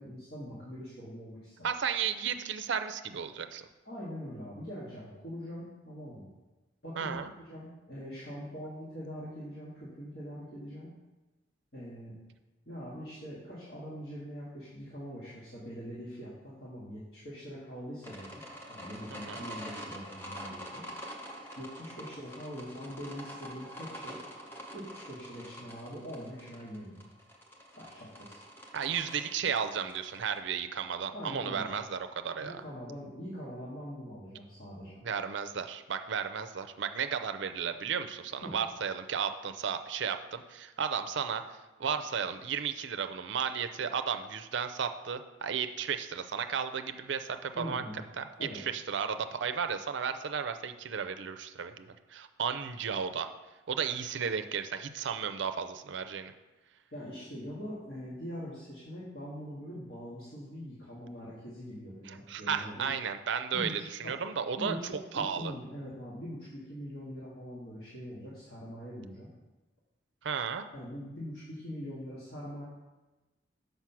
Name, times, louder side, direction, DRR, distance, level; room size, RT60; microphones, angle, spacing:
voice 1, 0.0-1.7 3.8-6.3 6.8-7.2 7.5-10.9 11.7-12.1 12.6-18.4 18.7-20.8 21.6-24.2 24.7-27.1 27.7-28.4 31.1-31.8 32.4-35.0 38.4-38.6 47.5-48.0 48.4-48.6 56.9-62.9 63.5-64.1 64.6-69.3 70.7-72.6, equal, 55° left, -9 dB, 1.7 m, -43 dB
voice 2, 1.6-3.6 7.0-7.3 19.1-19.5 28.7-32.6 35.0-41.4 41.8-47.8 48.2-48.3 48.5-53.3 53.7-56.3 62.1-65.5 70.2-70.7, right 7 dB, 70° right, 8 dB, 0.5 m, -34 dB
sound 1, 18.0-30.4, equal, 10° left, 0.8 m, -46 dB
6.1 x 5.3 x 5.8 m, 1.1 s
head